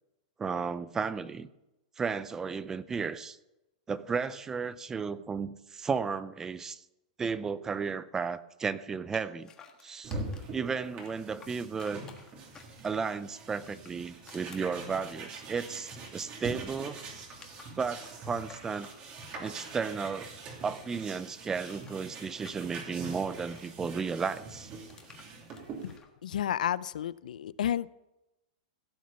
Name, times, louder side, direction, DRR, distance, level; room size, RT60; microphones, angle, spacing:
voice 1, 0.4-1.5 2.0-3.4 3.9-6.8 7.2-9.5 9.8-10.2 10.5-12.0 12.8-17.0 17.8-18.9 19.4-20.3 20.6-24.7, right 5 dB, 10° right, 16 dB, 0.5 m, -34 dB
sound 1, 9.1-10.6 11.0-13.1 13.6-16.1 16.4-20.5 20.8-23.7 24.2-26.1, left 6 dB, 15° left, 1.4 m, -55 dB
sound 2, 10.0-26.0, right 3 dB, 30° right, 2.7 m, -44 dB
voice 2, 26.2-27.9, left 10 dB, 85° left, 19 dB, 0.4 m, -31 dB
16.5 x 6.4 x 6.9 m, 0.93 s
supercardioid pair, 155°, 4 cm